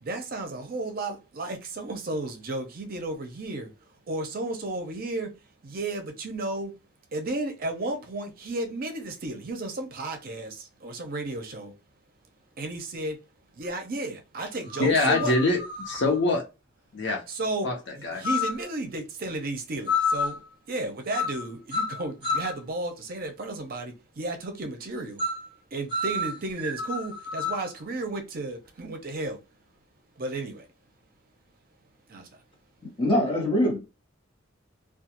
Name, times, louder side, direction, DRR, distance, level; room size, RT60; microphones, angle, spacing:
voice 1, 0.0-3.7 4.1-5.3 5.6-6.7 7.1-11.7 12.6-13.2 13.5-15.3 17.3-17.7 18.1-20.4 20.7-25.2 25.7-29.4 30.2-30.7 32.1-32.4, right 2 dB, 50° right, 0.6 m, -33 dB
sound 1, 13.6-13.7 14.6-16.2 18.2-18.7 19.9-20.4 21.1-21.4 21.7-22.6 25.2-25.5 25.9-27.7, left 4 dB, 25° right, 1.0 m, -29 dB
voice 2, 14.8-15.6 15.9-16.4 16.9-17.2 17.6-18.2, left 2 dB, 65° left, 0.8 m, -24 dB
voice 3, 33.0-33.8, left 1 dB, 25° left, 1.0 m, -23 dB
2.3 x 2.3 x 2.8 m
head